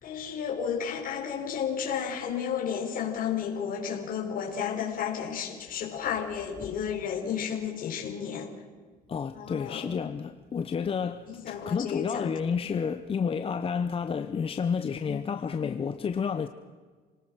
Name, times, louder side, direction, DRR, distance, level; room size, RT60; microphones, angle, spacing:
voice 1, 0.0-8.5 9.3-9.8 11.3-12.3, left 8 dB, 55° left, 4.3 m, -32 dB
voice 2, 9.1-16.5, left 6 dB, 35° left, 0.9 m, -30 dB
28.0 x 19.5 x 6.3 m
cardioid pair, 110°, 17 cm